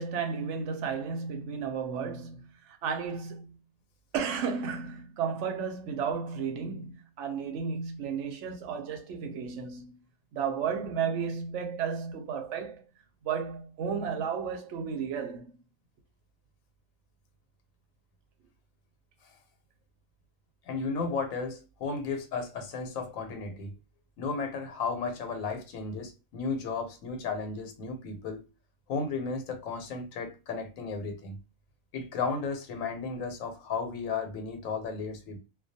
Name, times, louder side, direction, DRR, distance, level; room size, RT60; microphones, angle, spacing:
voice 1, 0.0-3.6 4.1-10.0 10.3-12.8 13.2-15.6, right 6 dB, 65° right, 0.8 m, -33 dB
voice 2, 20.7-23.7 24.2-28.4 28.9-31.4 31.9-35.4, left 4 dB, 80° left, 1.0 m, -34 dB
2.3 x 2.2 x 2.6 m
omnidirectional pair, 1.4 m